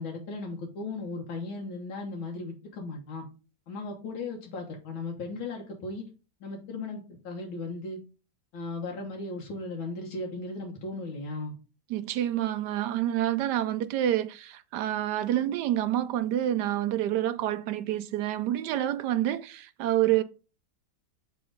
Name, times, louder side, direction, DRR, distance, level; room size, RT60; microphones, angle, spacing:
voice 1, 0.0-3.3 3.7-6.0 6.4-8.0 8.5-11.5, left 3 dB, 85° left, 2.0 m, -36 dB
voice 2, 11.9-20.2, right 12 dB, 75° right, 1.0 m, -28 dB
6.9 x 3.7 x 5.0 m
omnidirectional pair, 2.1 m